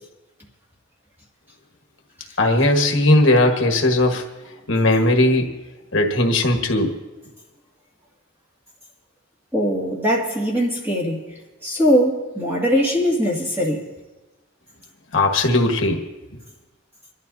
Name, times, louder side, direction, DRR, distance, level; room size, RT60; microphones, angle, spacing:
voice 1, 2.4-4.2 4.7-5.5 5.9-6.9 15.1-16.0, left 1 dB, 65° left, 1.4 m, -18 dB
voice 2, 9.5-13.9, equal, 10° right, 2.0 m, -21 dB
27.0 x 12.0 x 2.7 m
head